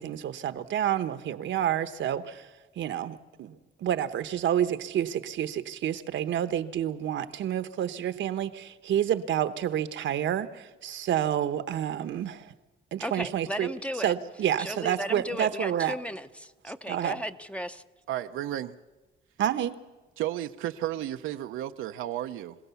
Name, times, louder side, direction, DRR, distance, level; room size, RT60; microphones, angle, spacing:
voice 1, 0.0-2.5 2.8-12.5 12.9-13.7 14.0-15.9 16.9-17.2 19.4-19.8, right 10 dB, 70° right, 1.0 m, -29 dB
voice 2, 13.0-14.1 14.6-17.8, equal, 5° left, 0.7 m, -35 dB
voice 3, 18.1-18.7 20.2-22.6, right 12 dB, 85° right, 0.7 m, -33 dB
26.0 x 16.5 x 7.0 m
cardioid pair, 90°, 20 cm